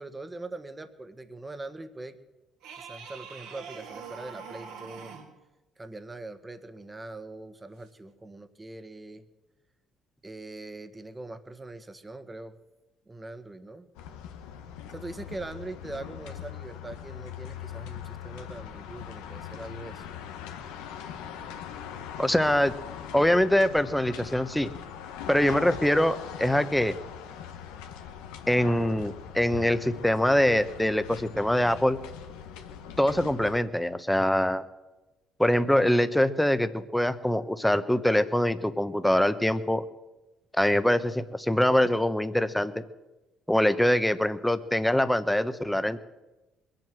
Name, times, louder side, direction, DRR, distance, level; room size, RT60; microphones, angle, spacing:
voice 1, 0.0-2.2 2.7-5.2 5.8-9.2 10.2-12.5 13.1-13.9 14.9-20.1, right 2 dB, 20° right, 10 dB, 1.5 m, -42 dB
sound 1, 2.6-5.4 7.8-7.9, right 6 dB, 80° right, 2.6 m, -43 dB
sound 2, 14.0-33.6, left 8 dB, 85° left, 1.2 m, -41 dB
voice 2, 22.2-22.7 23.1-24.7 25.3-27.0 28.5-32.0 33.0-34.6 35.4-39.8 40.6-42.8 43.5-46.0, left 1 dB, 5° left, 12 dB, 1.1 m, -24 dB
21.5 x 7.9 x 7.6 m, 1.1 s
supercardioid pair, 65°, 0 cm